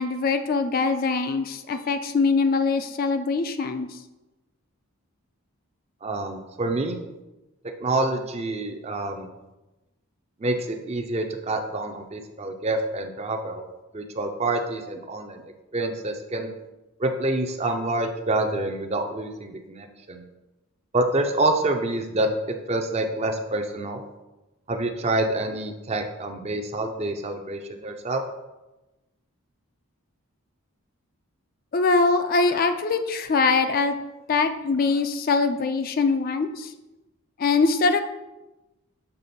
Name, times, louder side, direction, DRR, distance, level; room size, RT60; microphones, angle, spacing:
voice 1, 0.0-3.9 31.7-33.9 34.3-36.7 37.4-38.0, left 4 dB, 40° left, 8 dB, 0.4 m, -23 dB
voice 2, 6.0-7.0 7.8-9.3 10.4-13.6 13.9-15.4 15.7-16.5 17.0-20.2 20.9-22.3 22.7-24.0 24.7-28.2, right 2 dB, 30° right, 6 dB, 0.5 m, -27 dB
6.8 x 3.7 x 4.2 m, 1.0 s
head